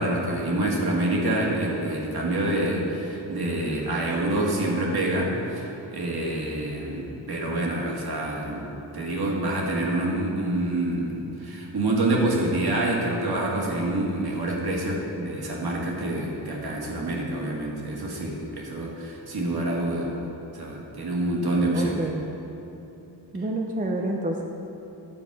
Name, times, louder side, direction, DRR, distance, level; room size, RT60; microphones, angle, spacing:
voice 1, 0.0-8.6 8.9-20.1 20.5-22.1, right 1 dB, 55° right, -2 dB, 1.7 m, -27 dB
voice 2, 21.4-22.2 23.3-24.4, right 1 dB, 20° right, 2 dB, 0.5 m, -29 dB
10.0 x 7.0 x 4.7 m, 3.0 s
wide cardioid pair, 135°, 45 cm